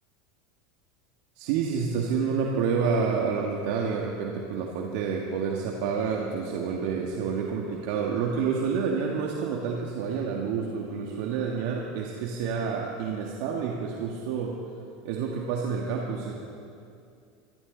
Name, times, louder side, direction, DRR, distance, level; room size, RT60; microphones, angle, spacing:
voice 1, 1.4-14.6 15.0-16.3, right 6 dB, 65° right, 0 dB, 1.7 m, -29 dB
25.5 x 12.5 x 4.0 m, 2.5 s
hypercardioid pair, 85°, 0 cm